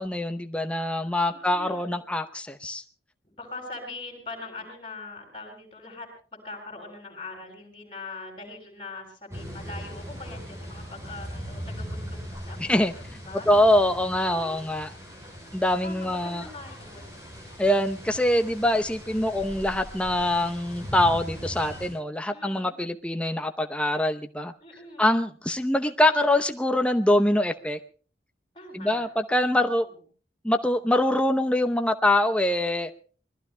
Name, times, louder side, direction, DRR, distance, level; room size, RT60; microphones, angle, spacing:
voice 1, 0.0-2.8 12.6-12.9 13.5-14.9 15.5-16.4 17.6-24.5 25.0-27.8 28.7-29.9 30.4-32.9, left 1 dB, 5° left, 7 dB, 0.7 m, -24 dB
voice 2, 1.3-2.0 3.2-13.9 14.2-14.6 15.4-17.2 22.3-22.8 24.6-25.1 28.5-29.0 29.6-29.7, left 3 dB, 30° left, 3 dB, 6.9 m, -42 dB
sound 1, 9.3-21.9, equal, 15° right, 6.7 m, -40 dB
26.5 x 21.0 x 2.2 m, 0.40 s
head